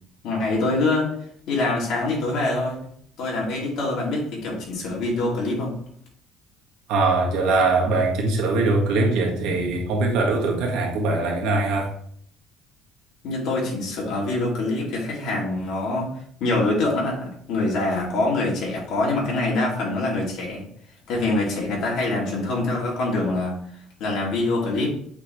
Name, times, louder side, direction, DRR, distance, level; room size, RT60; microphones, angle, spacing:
voice 1, 0.2-1.1 1.5-2.8 3.2-5.7 13.2-16.1 16.4-20.6 21.1-23.5 24.0-24.9, left 2 dB, 60° left, -3 dB, 2.6 m, -24 dB
voice 2, 6.9-11.9, right 3 dB, 80° right, -1 dB, 1.7 m, -22 dB
8.2 x 4.1 x 3.2 m, 0.65 s
cardioid pair, 150°, 0 cm